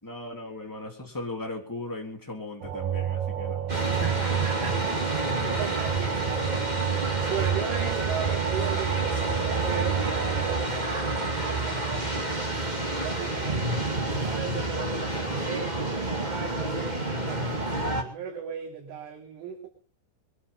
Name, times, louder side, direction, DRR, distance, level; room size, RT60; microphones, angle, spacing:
voice 1, 0.0-3.6 4.0-4.1 7.2-7.3, left 2 dB, 5° left, 0 dB, 2.4 m, -37 dB
sound 1, 2.6-10.6, right 10 dB, 70° right, 4.7 m, -30 dB
sound 2, 3.7-18.0, right 2 dB, 30° right, 0.7 m, -29 dB
voice 2, 3.8-6.7 7.3-12.5 12.9-13.7 14.0-19.7, right 6 dB, 90° right, -4 dB, 5.9 m, -37 dB
22.5 x 11.0 x 5.6 m, 0.41 s
omnidirectional pair, 5.5 m